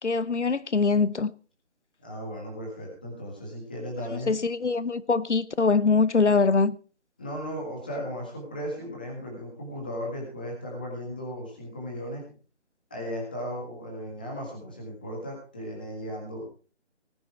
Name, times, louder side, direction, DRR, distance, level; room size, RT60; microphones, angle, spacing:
voice 1, 0.0-1.3 4.3-6.8, left 4 dB, 80° left, 1.1 m, -23 dB
voice 2, 2.0-4.3 7.2-12.2 12.9-16.5, equal, 10° left, 1.8 m, -36 dB
18.5 x 10.0 x 4.5 m
figure-of-eight pair, 180°, 35 cm